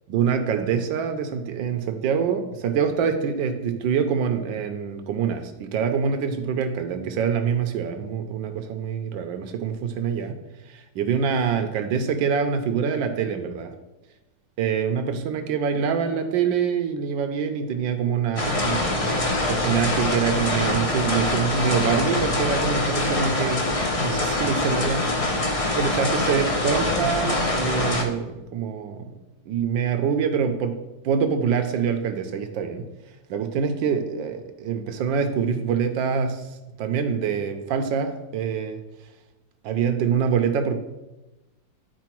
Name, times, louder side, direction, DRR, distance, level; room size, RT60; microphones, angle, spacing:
voice 1, 0.1-10.4 10.7-13.7 14.6-23.7 24.0-25.1 25.8-29.1 29.5-30.8 31.0-32.9 33.3-36.5 36.8-38.8 39.6-40.8, right 7 dB, 85° right, 6 dB, 1.4 m, -25 dB
sound 1, 18.4-28.0, left 2 dB, 50° left, 0.4 m, -24 dB
9.4 x 4.6 x 4.5 m, 1.0 s
omnidirectional pair, 2.0 m